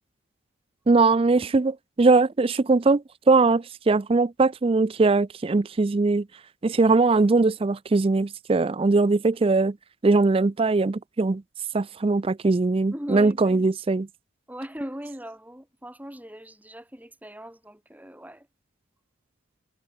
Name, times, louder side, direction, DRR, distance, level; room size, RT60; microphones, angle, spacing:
voice 1, 0.9-6.3 6.6-9.8 10.0-11.4 11.7-14.1, right 3 dB, 30° right, 0.4 m, -21 dB
voice 2, 12.9-13.7 14.5-18.5, equal, 10° right, 6.6 m, -39 dB
head